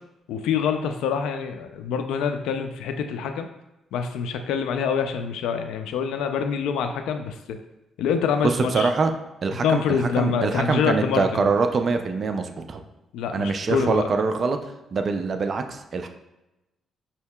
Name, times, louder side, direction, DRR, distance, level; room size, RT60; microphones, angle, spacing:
voice 1, 0.3-3.5 3.9-7.6 8.0-8.9 9.6-11.5 13.1-14.1, left 6 dB, 90° left, 6 dB, 0.3 m, -25 dB
voice 2, 8.4-9.1 9.4-12.8 13.3-16.1, right 4 dB, 45° right, 6 dB, 0.4 m, -24 dB
5.5 x 2.8 x 2.2 m, 0.95 s
cardioid pair, 90°, 0 cm